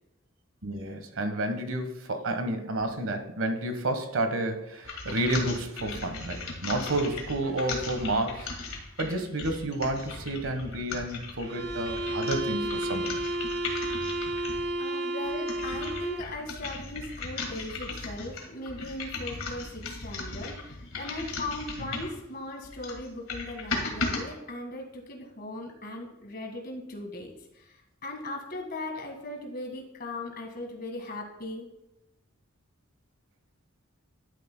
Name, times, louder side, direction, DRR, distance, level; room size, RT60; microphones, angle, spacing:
voice 1, 0.6-8.5 9.0-13.2 21.9-22.0, right 1 dB, 80° right, 7 dB, 1.3 m, -30 dB
sound 1, 4.8-14.7 15.2-22.2 22.6-24.2, left 3 dB, 75° left, 2.0 m, -37 dB
sound 2, 11.4-16.4, right 1 dB, 55° right, 0.7 m, -32 dB
voice 2, 14.8-31.7, left 2 dB, 45° left, 2 dB, 1.7 m, -38 dB
11.5 x 9.2 x 2.2 m, 0.91 s
head